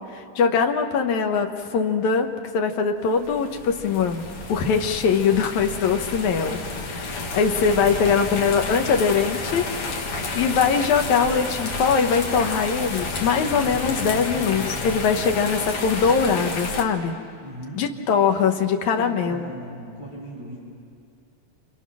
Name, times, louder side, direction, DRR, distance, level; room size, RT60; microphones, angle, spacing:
voice 1, 0.1-2.3 2.5-9.6 10.4-17.2 17.8-19.5, left 6 dB, 70° left, 4 dB, 2.6 m, -22 dB
sound 1, 3.1-16.8, left 3 dB, 50° left, 2.5 m, -31 dB
voice 2, 7.9-8.5 17.4-17.9 19.0-20.6, right 1 dB, 10° right, -6 dB, 6.9 m, -39 dB
sound 2, 12.7-15.5, left 2 dB, 70° right, 4.9 m, -38 dB
28.5 x 27.0 x 6.3 m, 2.3 s
omnidirectional pair, 3.5 m